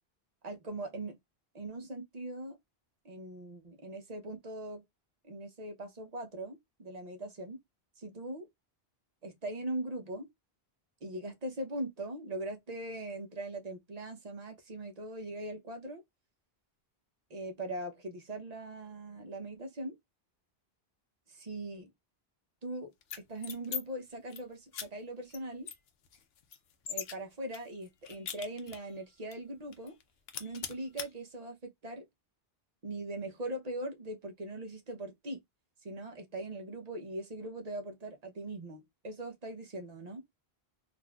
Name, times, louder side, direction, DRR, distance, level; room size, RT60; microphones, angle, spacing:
voice 1, 0.4-1.2 1.5-2.6 3.0-4.8 5.3-7.6 8.0-8.5 9.2-10.3 11.0-16.0 17.3-20.0 21.3-21.9 22.6-22.9 23.3-25.7 26.9-30.0 30.4-32.0 32.8-35.4 35.8-40.2, right 1 dB, 45° right, 0.8 m, -40 dB
sound 1, 23.0-23.8 24.1-24.4 24.7-24.9 25.3-25.4 25.7-27.1 27.5-28.9 29.3-29.4 29.7-30.0 30.3-31.1, left 8 dB, 75° left, 0.8 m, -40 dB
3.9 x 2.5 x 2.3 m
omnidirectional pair, 1.0 m